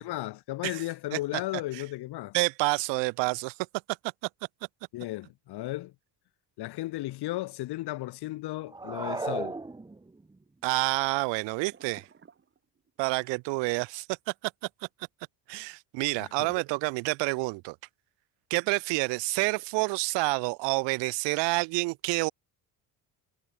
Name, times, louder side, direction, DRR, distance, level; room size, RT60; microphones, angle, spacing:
voice 1, 0.0-2.3 4.9-5.9 6.6-9.5 16.2-16.5, left 17 dB, 65° left, 1.5 m, -35 dB
voice 2, 2.3-3.5 10.6-12.0 13.0-14.1 15.5-17.8 18.5-22.3, right 26 dB, 90° right, 0.8 m, -28 dB
sound 1, 8.7-10.3, right 3 dB, 10° right, 1.2 m, -35 dB
sound 2, 8.7-9.4 9.7-10.0 11.7-13.1, right 6 dB, 30° right, 3.8 m, -52 dB
cardioid pair, 125°, 42 cm